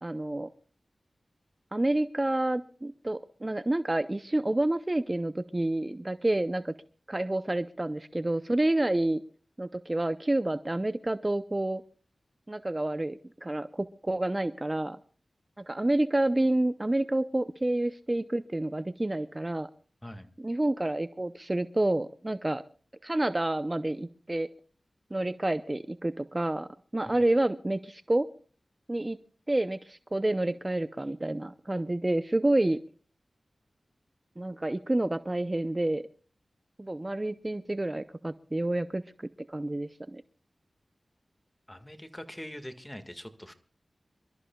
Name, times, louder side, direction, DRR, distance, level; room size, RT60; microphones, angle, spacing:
voice 1, 0.0-0.5 1.7-6.7 7.1-9.2 9.6-11.8 12.5-15.0 15.6-19.7 20.4-22.6 23.0-24.5 25.1-28.3 28.9-29.2 29.5-32.8 34.4-36.0 36.8-40.2, right 1 dB, 30° right, 12 dB, 0.6 m, -29 dB
voice 2, 41.7-43.5, equal, 15° left, 8 dB, 1.8 m, -43 dB
27.5 x 13.0 x 2.3 m, 0.43 s
cardioid pair, 45°, 0 cm